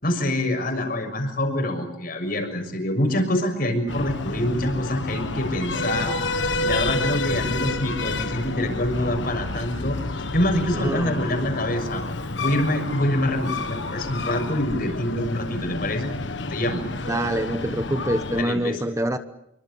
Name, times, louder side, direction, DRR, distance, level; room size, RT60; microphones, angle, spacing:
voice 1, 0.0-6.1 6.6-12.0 12.4-16.1 16.5-16.8 18.3-18.8, left 1 dB, 50° left, 5 dB, 6.6 m, -25 dB
Breathing, 3.9-18.4, left 2 dB, 70° left, 1.5 m, -29 dB
voice 2, 10.8-11.2 17.1-19.2, right 1 dB, 15° right, 9 dB, 1.1 m, -25 dB
28.0 x 24.5 x 7.0 m, 0.78 s
head